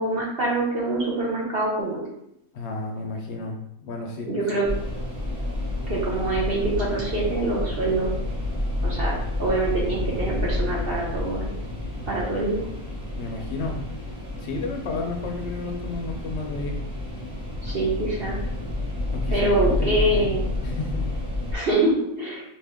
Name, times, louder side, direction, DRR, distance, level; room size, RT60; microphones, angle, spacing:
voice 1, 0.0-2.1 4.3-4.7 5.9-8.1 8.8-11.5 12.1-12.7 17.6-18.4 19.3-20.4 21.5-22.4, right 2 dB, 50° right, -4 dB, 0.8 m, -25 dB
voice 2, 2.5-4.6 13.2-13.8 14.4-16.8 19.1-20.3 20.6-21.1, left 3 dB, 65° left, 2 dB, 0.7 m, -32 dB
sound 1, 4.6-21.5, left 1 dB, 5° right, 1.2 m, -29 dB
3.4 x 2.7 x 3.5 m, 0.82 s
omnidirectional pair, 1.5 m